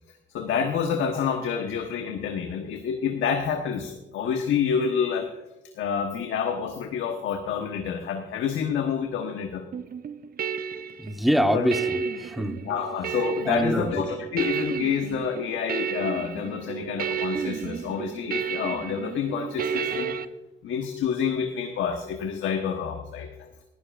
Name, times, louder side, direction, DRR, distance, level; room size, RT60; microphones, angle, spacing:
voice 1, 0.3-5.3 5.8-9.7 11.5-11.7 12.6-20.2 20.6-23.5, left 7 dB, 80° left, 4 dB, 1.2 m, -28 dB
sound 1, 9.7-20.3, right 7 dB, 50° right, 0.7 m, -32 dB
voice 2, 11.0-12.6 13.5-14.0, equal, ahead, 7 dB, 1.1 m, -25 dB
18.5 x 12.5 x 2.5 m, 1.0 s
cardioid pair, 90°, 20 cm